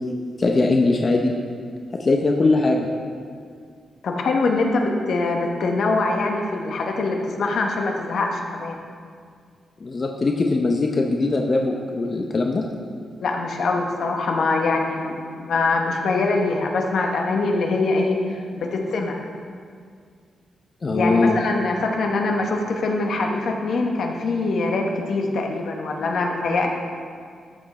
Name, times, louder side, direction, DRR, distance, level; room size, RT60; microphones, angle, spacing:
voice 1, 0.4-1.3 1.9-2.9 9.8-12.6 20.8-21.4, left 3 dB, 40° left, 2 dB, 0.7 m, -20 dB
voice 2, 4.0-8.8 13.2-19.2 20.9-26.7, left 3 dB, 70° left, 2 dB, 1.2 m, -23 dB
13.0 x 5.9 x 4.3 m, 2.1 s
cardioid pair, 90°, 0 cm